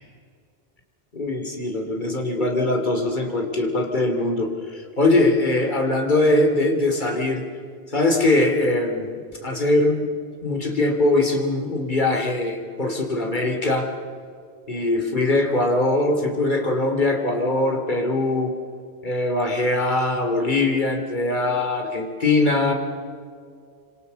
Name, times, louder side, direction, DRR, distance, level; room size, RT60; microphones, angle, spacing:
voice 1, 1.1-7.4 7.9-9.1 9.4-10.1 10.4-13.9 14.7-18.5 19.0-22.7, left 2 dB, 45° left, 3 dB, 3.3 m, -21 dB
26.5 x 26.0 x 7.0 m, 2.2 s
omnidirectional pair, 1.1 m